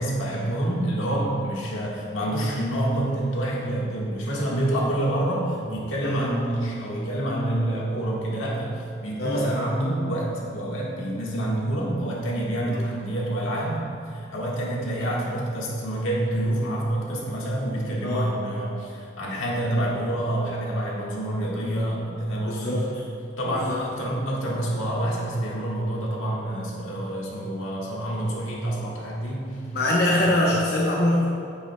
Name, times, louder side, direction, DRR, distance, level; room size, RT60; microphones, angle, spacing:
voice 1, 0.0-22.9 23.4-29.6 30.3-30.5, right 1 dB, 85° left, -4 dB, 1.5 m, -27 dB
voice 2, 6.0-6.4 9.2-9.5 12.7-12.8 15.0-15.1 18.0-18.3 19.7-19.9 22.5-22.9 23.5-23.8 29.7-31.3, left 1 dB, 50° left, -4 dB, 0.8 m, -24 dB
8.7 x 8.6 x 2.2 m, 2.4 s
head